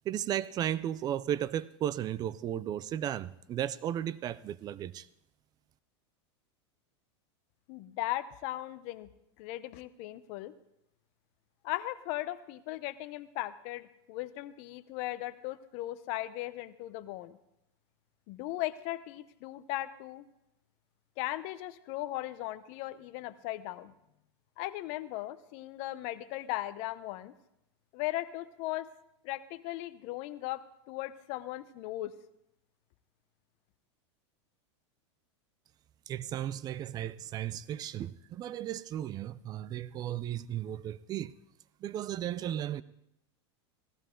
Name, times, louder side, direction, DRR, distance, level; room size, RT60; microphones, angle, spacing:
voice 1, 0.1-5.1 36.1-41.3 41.8-42.8, right 11 dB, 25° right, 0.4 m, -35 dB
voice 2, 7.7-9.1 9.4-10.5 11.6-17.4 18.3-20.3 21.2-23.9 24.6-27.3 27.9-28.9 29.2-32.1, left 16 dB, 50° left, 0.8 m, -37 dB
16.5 x 14.5 x 3.8 m
supercardioid pair, 140°, 15 cm